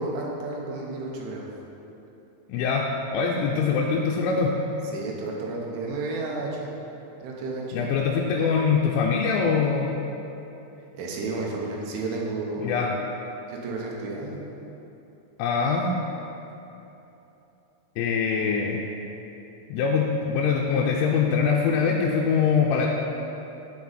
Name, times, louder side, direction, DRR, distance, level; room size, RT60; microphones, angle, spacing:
voice 1, 0.0-1.5 3.5-3.6 4.9-6.7 7.2-7.9 10.9-12.8 13.5-14.4, right 2 dB, 80° right, -2 dB, 3.4 m, -32 dB
voice 2, 2.5-4.5 7.7-10.0 12.6-12.9 15.4-15.9 18.0-18.8 19.7-22.9, left 5 dB, 85° left, -2 dB, 3.1 m, -23 dB
14.5 x 4.9 x 4.2 m, 2.9 s
omnidirectional pair, 5.7 m